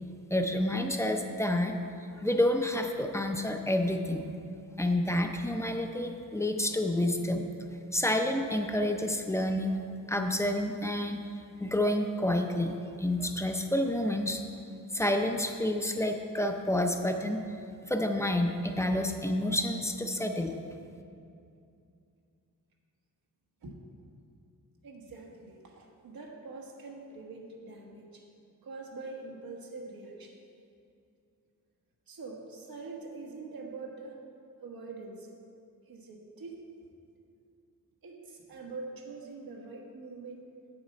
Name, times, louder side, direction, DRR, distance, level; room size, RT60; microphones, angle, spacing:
voice 1, 0.3-1.8 2.2-4.3 4.8-7.5 7.9-9.8 10.1-11.2 11.6-14.4 14.9-17.4 17.9-20.5, left 1 dB, 10° left, 4 dB, 0.5 m, -29 dB
voice 2, 24.8-28.2 28.6-30.4 32.1-34.2 34.6-35.3 35.9-36.6 38.0-40.5, right 3 dB, 90° right, 0 dB, 1.3 m, -44 dB
7.5 x 7.2 x 5.2 m, 2.5 s
wide cardioid pair, 135°, 34 cm